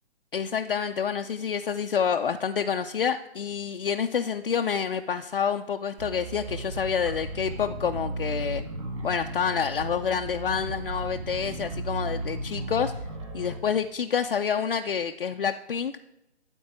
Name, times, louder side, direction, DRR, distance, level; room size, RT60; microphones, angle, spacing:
voice 1, 0.3-8.6 9.0-12.9 13.3-15.9, left 7 dB, 55° left, 5 dB, 0.6 m, -28 dB
sound 1, 6.0-13.6, right 2 dB, 30° right, 1.4 m, -35 dB
13.5 x 4.6 x 8.7 m, 0.86 s
hypercardioid pair, 165°, 33 cm